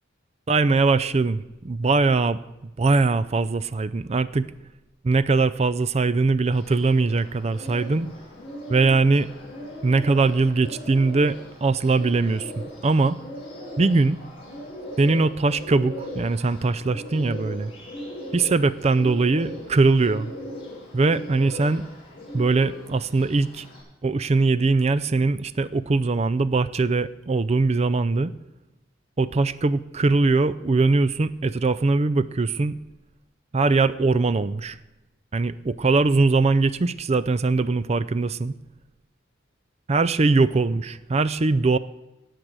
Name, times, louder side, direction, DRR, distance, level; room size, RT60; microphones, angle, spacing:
voice 1, 0.5-2.4 2.8-4.5 5.0-8.1 8.7-9.3 9.8-13.2 13.8-14.2 15.0-17.7 18.3-20.3 20.9-21.8 22.3-23.7 24.0-28.3 29.2-32.7 33.5-34.8 35.3-38.5 39.9-41.8, right 3 dB, 30° right, 16 dB, 0.4 m, -21 dB
Bird, 6.5-23.8, left 1 dB, 30° left, 5.2 m, -39 dB
18.5 x 6.7 x 6.1 m, 1.0 s
head